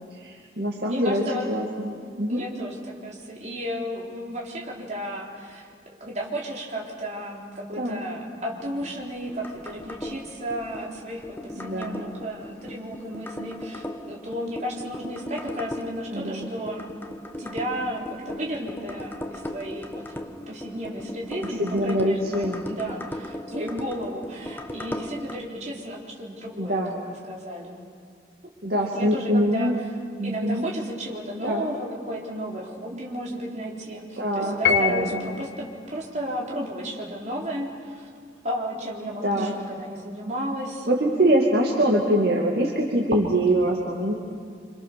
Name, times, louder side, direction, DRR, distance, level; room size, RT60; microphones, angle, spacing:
voice 1, 0.1-1.2 1.5-2.5 7.8-8.0 11.5-12.0 16.1-16.5 21.6-22.7 26.6-27.0 28.6-29.7 30.2-30.6 31.4-31.6 34.2-35.3 39.2-39.6 40.8-44.1, right 1 dB, 60° right, -1 dB, 2.5 m, -24 dB
voice 2, 0.9-1.5 2.3-5.7 6.0-16.9 17.4-20.0 20.5-26.8 27.3-27.8 28.7-29.7 30.2-38.1 38.4-40.9, equal, 40° right, -2 dB, 4.1 m, -33 dB
sound 1, 8.6-25.4, left 1 dB, 10° left, 1.3 m, -38 dB
Piano, 34.6-35.5, left 7 dB, 70° left, 1.2 m, -24 dB
27.5 x 26.5 x 6.9 m, 2.3 s
head